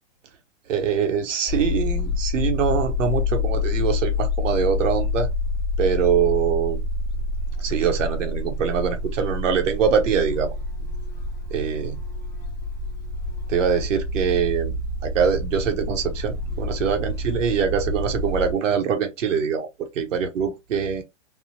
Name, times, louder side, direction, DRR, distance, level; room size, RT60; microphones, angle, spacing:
voice 1, 0.7-5.3 5.8-6.8 7.6-10.5 11.5-12.0 13.5-14.7 15.0-19.7 19.9-21.0, right 7 dB, 85° right, 0.9 m, -23 dB
sound 1, 1.5-18.5, left 2 dB, 10° left, 0.6 m, -27 dB
3.3 x 2.0 x 2.8 m
hypercardioid pair, 150°, 37 cm